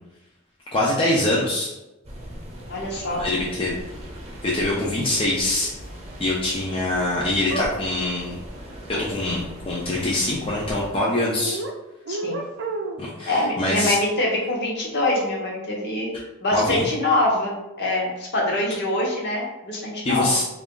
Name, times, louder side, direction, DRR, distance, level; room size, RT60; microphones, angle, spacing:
voice 1, 0.7-1.7 3.2-3.8 4.4-5.7 6.2-8.4 8.9-11.6 13.0-14.0 16.5-16.8 20.0-20.5, left 1 dB, 25° left, -5 dB, 0.5 m, -24 dB
sound 1, 2.0-10.9, equal, 30° right, 0.8 m, -39 dB
voice 2, 2.7-3.2 12.1-12.4 13.3-16.1 16.4-20.3, left 1 dB, 55° left, -2 dB, 1.0 m, -24 dB
sound 2, 7.5-7.7 8.9-9.1 11.1-11.7 12.1-13.1, right 2 dB, 55° right, 0.5 m, -30 dB
3.4 x 2.5 x 3.7 m, 0.99 s
head